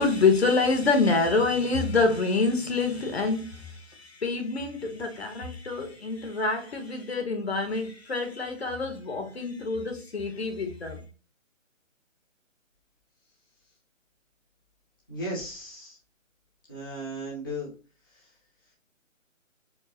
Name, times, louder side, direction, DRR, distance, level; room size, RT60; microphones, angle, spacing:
voice 1, 0.0-11.0, left 3 dB, 50° left, 1.1 m, -26 dB
voice 2, 15.1-16.0 16.7-17.7, equal, 15° left, 0.8 m, -35 dB
4.5 x 3.0 x 3.0 m
hypercardioid pair, 170°, 40 cm